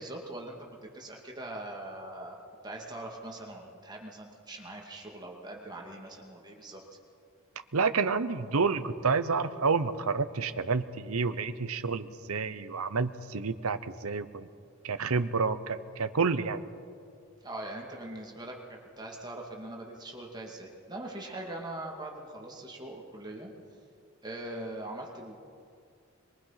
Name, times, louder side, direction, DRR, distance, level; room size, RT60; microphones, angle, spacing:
voice 1, 0.0-2.4 2.6-6.8 17.4-23.5 24.2-25.4, right 1 dB, 20° right, 0 dB, 2.3 m, -42 dB
voice 2, 7.7-14.5 14.8-16.6, right 4 dB, 80° right, 12 dB, 0.9 m, -29 dB
24.0 x 22.5 x 5.9 m, 2.4 s
head